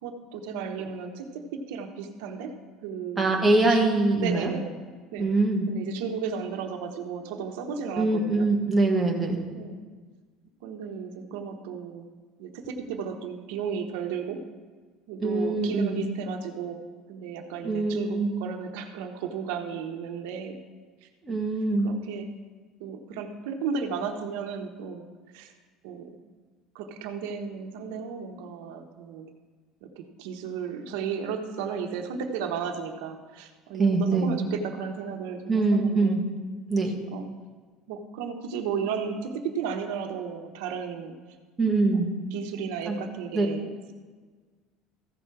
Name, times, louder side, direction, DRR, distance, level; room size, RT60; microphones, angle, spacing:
voice 1, 0.0-2.5 2.8-3.9 4.2-4.7 5.1-5.3 5.7-8.5 9.5-9.8 10.6-12.0 12.4-14.4 15.1-16.8 17.1-20.6 21.0-21.1 21.8-22.3 22.8-25.1 25.3-25.5 25.8-26.1 26.7-29.3 29.8-36.2 36.8-37.3 37.9-41.1 42.3-43.9, right 6 dB, 80° right, 5 dB, 1.0 m, -34 dB
voice 2, 3.2-4.5 5.2-5.7 8.0-9.4 15.2-16.0 17.6-18.3 21.2-21.9 33.8-34.4 35.5-36.2 36.7-36.9 41.6-42.1 42.9-43.0 43.3-43.5, right 3 dB, 10° right, -1 dB, 1.2 m, -23 dB
14.5 x 6.1 x 4.7 m, 1.4 s
cardioid pair, 175°, 0 cm